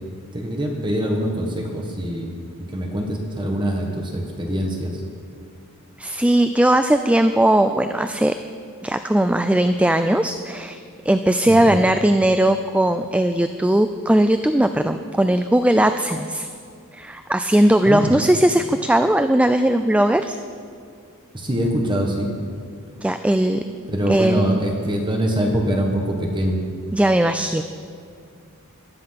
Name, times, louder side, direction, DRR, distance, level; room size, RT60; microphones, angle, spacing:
voice 1, 0.3-2.3 2.7-5.0 11.4-11.8 17.9-18.1 21.3-22.3 23.9-26.6, equal, 20° right, 1 dB, 1.5 m, -24 dB
voice 2, 6.0-8.3 8.8-10.8 11.1-16.5 16.9-20.4 23.0-23.6 24.1-24.7 26.9-27.6, right 1 dB, 5° right, 9 dB, 0.4 m, -18 dB
18.5 x 12.5 x 5.9 m, 2.2 s
head